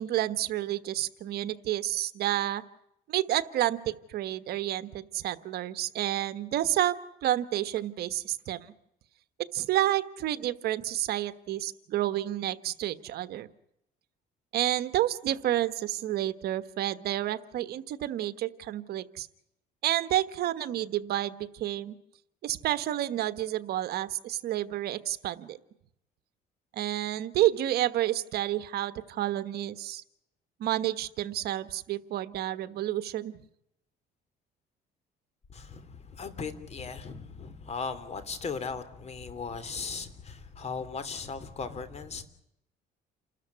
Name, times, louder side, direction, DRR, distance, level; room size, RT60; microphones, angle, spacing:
voice 1, 0.0-2.6 3.1-8.7 9.5-13.5 14.5-19.3 19.8-21.9 22.4-25.6 26.7-30.0 30.6-33.4, right 13 dB, 70° right, 13 dB, 1.3 m, -30 dB
voice 2, 35.5-42.2, left 5 dB, 40° left, 13 dB, 3.2 m, -37 dB
29.0 x 13.5 x 9.6 m, 0.80 s
cardioid pair, 110°, 17 cm